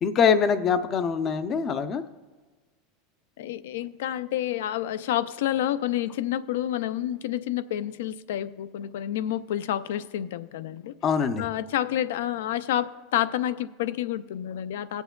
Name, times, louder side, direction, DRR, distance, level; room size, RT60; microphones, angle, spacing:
voice 1, 0.0-2.0 11.0-11.4, left 6 dB, 25° left, 11 dB, 0.4 m, -23 dB
voice 2, 3.4-10.9 11.4-15.0, left 12 dB, 90° left, 15 dB, 0.3 m, -29 dB
19.0 x 8.0 x 2.2 m, 1.3 s
supercardioid pair, 165°, 0 cm